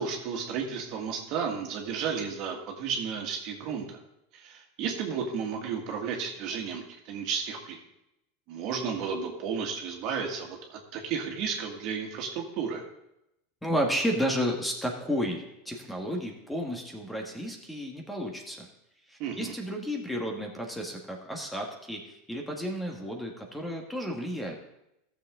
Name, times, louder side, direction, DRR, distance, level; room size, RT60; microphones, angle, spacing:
voice 1, 0.0-4.0 4.3-7.8 8.5-12.8 19.2-19.5, right 6 dB, 55° right, 2 dB, 1.9 m, -33 dB
voice 2, 13.6-18.7 19.1-24.6, equal, 5° left, 2 dB, 1.5 m, -32 dB
14.0 x 7.0 x 3.8 m, 0.85 s
supercardioid pair, 115°, 0 cm